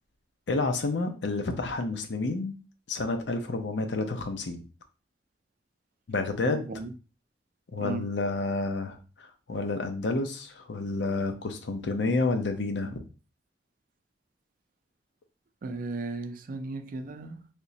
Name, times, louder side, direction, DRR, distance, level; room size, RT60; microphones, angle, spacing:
voice 1, 0.5-2.6 2.9-4.6 6.1-6.7 7.7-13.0, left 3 dB, 90° left, 0.7 m, -30 dB
voice 2, 6.4-6.9 7.8-8.0 15.6-17.5, right 3 dB, 50° right, 0.4 m, -36 dB
3.5 x 2.9 x 2.7 m
head